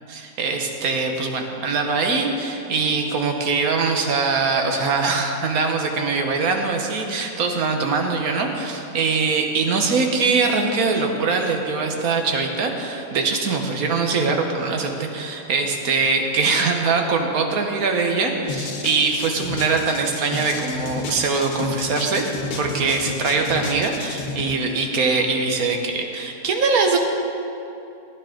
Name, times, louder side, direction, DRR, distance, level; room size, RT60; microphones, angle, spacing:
voice 1, 0.1-27.0, right 4 dB, 70° right, 3 dB, 1.5 m, -22 dB
sound 1, 18.5-24.4, left 4 dB, 85° left, 1.6 m, -31 dB
15.5 x 9.5 x 3.8 m, 2.9 s
omnidirectional pair, 1.6 m